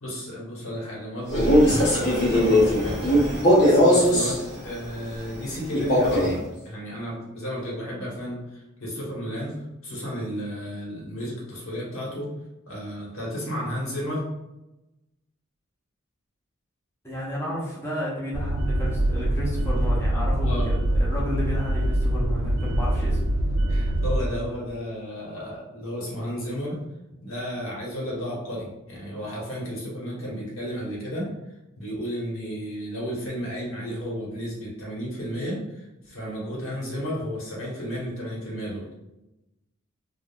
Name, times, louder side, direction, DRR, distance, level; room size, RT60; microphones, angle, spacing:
voice 1, 0.0-3.1 3.6-9.5 9.8-12.3 12.7-14.2 20.4-20.7 23.7-26.8 27.2-31.3 31.8-38.9, equal, 80° left, -4 dB, 1.0 m, -33 dB
Male speech man speaking, 1.3-4.4 5.7-6.4, equal, 50° left, 0.9 m, -19 dB
voice 2, 17.0-23.2, equal, 10° left, -6 dB, 0.5 m, -32 dB
sound 1, 18.3-24.2, right 1 dB, 90° right, 0.4 m, -24 dB
3.4 x 2.0 x 2.2 m, 0.96 s
head